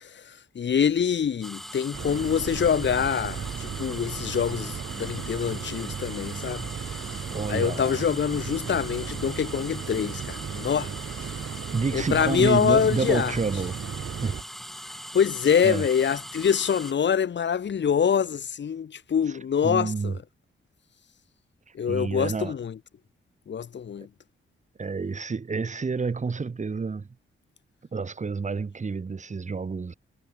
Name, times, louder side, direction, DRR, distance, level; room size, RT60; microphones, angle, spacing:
voice 1, 0.0-6.7 7.5-10.9 11.2-11.3 11.9-13.3 15.1-20.1 21.7-22.7 23.5-24.1, left 7 dB, 60° left, 1.4 m, -25 dB
sound 1, 1.4-16.9, equal, ahead, 2.0 m, -41 dB
sound 2, 1.9-14.4, right 7 dB, 65° right, 3.9 m, -36 dB
voice 2, 7.3-8.1 11.7-13.8 14.2-14.4 15.6-15.9 19.3-20.2 21.7-22.6 24.8-27.1 27.9-29.9, right 4 dB, 35° right, 1.8 m, -29 dB
cardioid pair, 95°, 21 cm